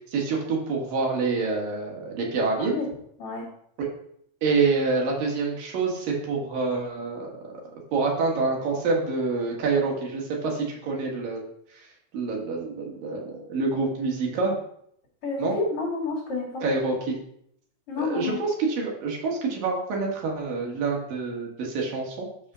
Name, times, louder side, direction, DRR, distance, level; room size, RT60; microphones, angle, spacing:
voice 1, 0.1-2.7 3.8-3.9 4.4-7.5 7.9-11.4 11.7-11.8 12.1-14.5 15.4-15.5 16.6-17.2 18.0-22.3, right 4 dB, 65° right, -1 dB, 3.3 m, -27 dB
voice 2, 15.2-16.6 17.9-18.4, left 4 dB, 40° left, -8 dB, 2.9 m, -29 dB
6.7 x 5.5 x 6.2 m, 0.70 s
omnidirectional pair, 4.4 m